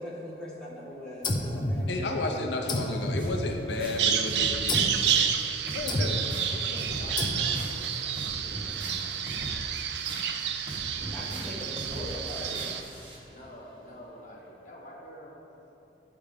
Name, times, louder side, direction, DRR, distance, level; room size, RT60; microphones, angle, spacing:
voice 1, 0.0-2.5 10.9-12.6, left 1 dB, 5° left, -7 dB, 1.3 m, -40 dB
sound 1, 1.2-2.3 2.7-4.0 4.7-5.1 5.9-6.4 7.2-7.8, left 1 dB, 25° left, 0.4 m, -31 dB
voice 2, 1.9-5.3 5.7-6.3, left 2 dB, 80° left, 2 dB, 0.5 m, -33 dB
sound 2, 3.2-13.2, right 1 dB, 30° right, 0.9 m, -40 dB
Bird vocalization bird call bird song, 4.0-12.8, right 8 dB, 75° right, 0.4 m, -30 dB
voice 3, 6.5-9.8 13.2-15.5, equal, 45° left, -3 dB, 1.2 m, -48 dB
9.9 x 3.4 x 5.0 m, 2.9 s
head